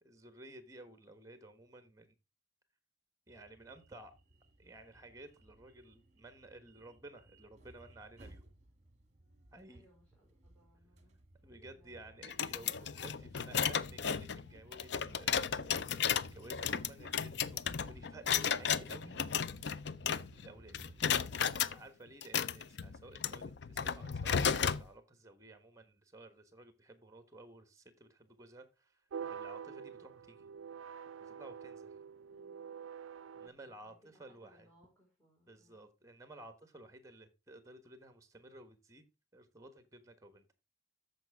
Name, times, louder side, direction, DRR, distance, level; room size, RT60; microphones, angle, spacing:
voice 1, 0.0-2.2 3.3-4.1 4.6-8.4 9.5-9.8 11.4-12.7 13.0-19.2 20.4-20.9 21.3-30.5 31.2-31.9 33.3-34.7 35.5-40.5, right 2 dB, 15° right, 1.4 m, -55 dB
sound 1, 3.3-21.2, right 1 dB, 35° right, 1.5 m, -59 dB
voice 2, 9.7-11.2 11.4-13.8 32.3-32.9 33.3-35.8, equal, 5° left, 4.6 m, -68 dB
sound 2, 12.2-20.5 20.7-21.7 22.2-24.8, left 7 dB, 60° left, 0.5 m, -34 dB
sound 3, 29.1-33.5, right 7 dB, 85° right, 0.4 m, -46 dB
13.5 x 5.2 x 3.6 m
head